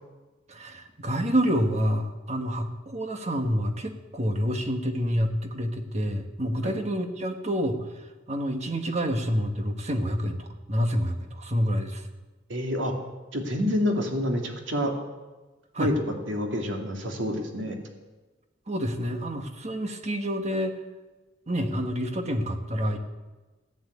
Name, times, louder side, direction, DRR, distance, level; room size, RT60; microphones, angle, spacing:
voice 1, 0.5-7.9 8.3-12.1 15.7-15.9 18.7-20.8 21.5-23.0, equal, 35° right, 5 dB, 1.5 m, -28 dB
voice 2, 12.5-12.9 13.3-14.9 15.8-15.9 16.3-17.8, equal, 75° right, 2 dB, 2.6 m, -28 dB
16.0 x 9.4 x 8.6 m, 1.2 s
head